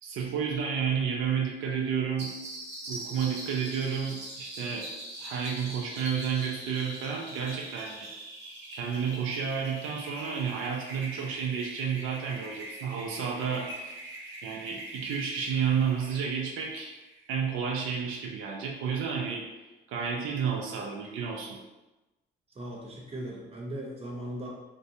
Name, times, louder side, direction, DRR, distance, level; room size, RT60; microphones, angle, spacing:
voice 1, 0.0-2.3 2.9-4.9 5.1-8.1 8.7-13.7 14.4-16.9 17.3-21.6, right 7 dB, 90° right, 0 dB, 0.4 m, -31 dB
sound 1, 2.2-17.4, right 1 dB, 60° right, 0.9 m, -43 dB
voice 2, 22.5-24.5, right 1 dB, 30° right, -3 dB, 0.7 m, -38 dB
2.6 x 2.0 x 2.7 m, 1.1 s
cardioid pair, 90°, 20 cm